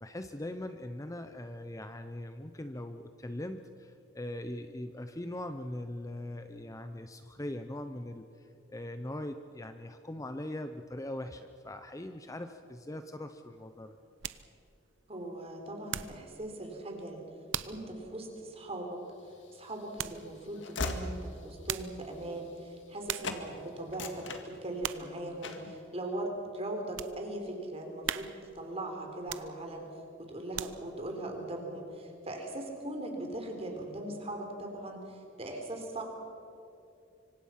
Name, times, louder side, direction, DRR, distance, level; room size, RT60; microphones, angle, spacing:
voice 1, 0.0-14.0, left 1 dB, 15° left, 8 dB, 0.7 m, -41 dB
sound 1, 13.6-16.3 16.7-17.0 17.5-17.9 18.3-18.4 20.0-20.3 21.4-22.1 22.7-22.8 23.0-23.5 23.9-24.3 24.8-25.2 25.6-25.8 26.3-27.2 27.6-27.7 28.0-28.6 29.2-29.9 30.3-31.0 31.5-31.6, right 10 dB, 85° right, 0.8 m, -39 dB
voice 2, 15.1-17.3 17.7-19.0 19.6-28.3 28.5-29.9 30.2-36.0, right 1 dB, 30° right, 3 dB, 3.8 m, -40 dB
Train / Slam, 19.3-23.0 23.2-23.5 23.8-25.0 25.4-25.8, left 2 dB, 75° left, 2.0 m, -40 dB
26.0 x 25.0 x 5.8 m, 2.6 s
head